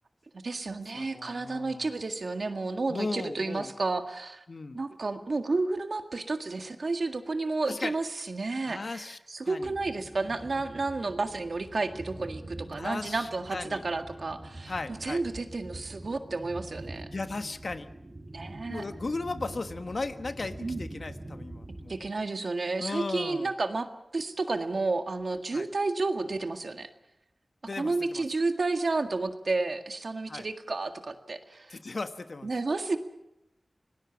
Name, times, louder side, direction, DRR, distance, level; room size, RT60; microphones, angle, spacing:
voice 1, 0.4-4.4 4.7-14.7 15.0-17.1 18.3-18.8 20.6-20.8 21.9-26.9 27.8-31.8 32.4-33.0, right 3 dB, 70° right, 6 dB, 1.8 m, -31 dB
voice 2, 0.9-1.9 2.9-3.7 4.5-4.8 7.6-8.0 8.6-9.2 9.4-9.7 12.8-13.8 14.7-15.2 17.1-17.9 18.7-22.0 22.8-23.5 25.5-25.7 27.7-28.2 30.3-30.5 31.7-32.5, left 3 dB, 65° left, 9 dB, 1.3 m, -36 dB
sound 1, 9.6-22.1, right 1 dB, 40° right, 3.7 m, -44 dB
25.5 x 19.0 x 7.1 m, 0.86 s
wide cardioid pair, 70°, 0 cm